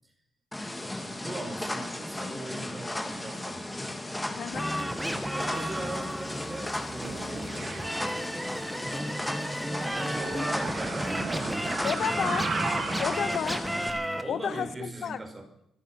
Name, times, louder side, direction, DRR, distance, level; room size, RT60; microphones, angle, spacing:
sound 1, 0.5-13.9, left 1 dB, 10° left, 2.4 m, -36 dB
voice 1, 1.2-3.8 5.3-8.3 9.9-12.7 14.2-15.5, right 1 dB, 20° right, 4 dB, 5.0 m, -40 dB
voice 2, 4.4-4.7 11.8-12.5 13.0-13.6 14.3-15.2, left 8 dB, 60° left, 16 dB, 0.6 m, -31 dB
sound 2, 4.5-14.2, equal, 5° right, 1.9 m, -34 dB
sound 3, 7.0-8.3 8.6-13.4, right 4 dB, 45° right, 3.0 m, -35 dB
26.0 x 8.9 x 6.1 m, 0.78 s
cardioid pair, 90°, 0 cm